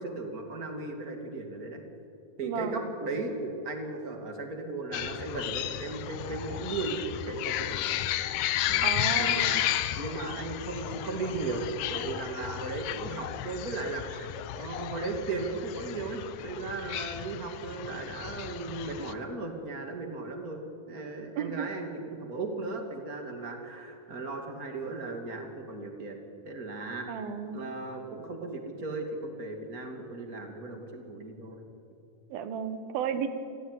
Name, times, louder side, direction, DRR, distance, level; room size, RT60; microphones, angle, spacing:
voice 1, 0.0-1.8 2.4-8.0 8.6-8.9 9.2-9.6 10.0-20.6 20.9-26.2 26.4-27.1 27.5-31.6, right 3 dB, 25° right, 4 dB, 2.4 m, -36 dB
voice 2, 2.4-2.9 8.8-9.6 21.4-21.7 27.1-27.6 32.3-33.3, right 7 dB, 75° right, 10 dB, 3.1 m, -33 dB
sound 1, 4.9-19.1, left 12 dB, 75° left, 1.9 m, -33 dB
27.0 x 16.0 x 10.0 m, 2.6 s
omnidirectional pair, 4.5 m